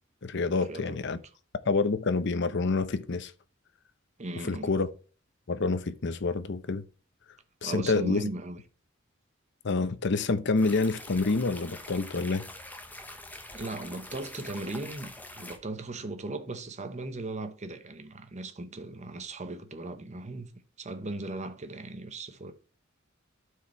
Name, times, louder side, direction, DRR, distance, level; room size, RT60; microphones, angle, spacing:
voice 1, 0.2-1.2 1.7-3.3 4.5-4.9 5.5-6.8 7.6-8.2 9.6-12.4, left 3 dB, 60° left, 0.7 m, -27 dB
voice 2, 4.2-4.7 7.6-8.6 13.5-20.5 20.8-22.5, right 2 dB, 35° right, 1.0 m, -37 dB
sound 1, 10.6-15.6, left 1 dB, 10° left, 1.1 m, -45 dB
12.0 x 4.8 x 3.1 m
head